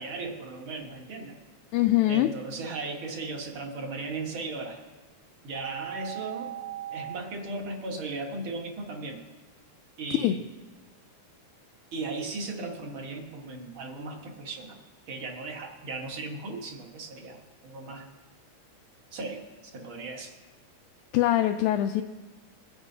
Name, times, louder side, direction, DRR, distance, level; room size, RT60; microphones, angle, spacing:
voice 1, 0.0-1.4 2.1-4.8 5.4-6.5 6.9-9.2 10.0-10.4 11.9-14.8 15.1-18.0 19.1-19.4 19.7-20.3, right 3 dB, 50° right, 2 dB, 1.9 m, -37 dB
voice 2, 1.7-2.3 10.2-10.4 21.1-22.0, left 14 dB, 80° left, 6 dB, 1.9 m, -23 dB
sound 1, 5.5-7.2, right 12 dB, 80° right, 1.3 m, -37 dB
22.5 x 9.6 x 2.8 m, 1.4 s
omnidirectional pair, 3.5 m